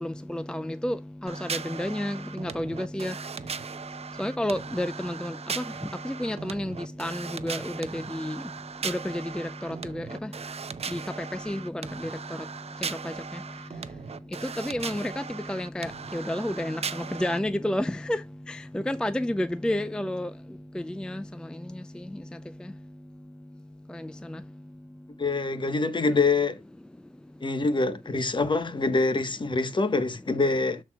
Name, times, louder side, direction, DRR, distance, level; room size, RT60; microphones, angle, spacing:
voice 1, 0.0-3.1 4.2-5.6 6.0-8.4 8.8-10.1 10.9-11.0 11.5-11.7 13.0-13.1 14.6-15.2 15.5-18.2 18.5-20.3 20.8-21.2 23.9-24.0 24.3-24.4, left 1 dB, 5° left, 0.4 m, -30 dB
sound 1, 1.3-17.4, right 6 dB, 50° right, 0.6 m, -38 dB
voice 2, 25.2-26.6 27.4-30.8, left 3 dB, 35° left, 1.2 m, -25 dB
13.0 x 4.5 x 2.3 m
wide cardioid pair, 90°, 14 cm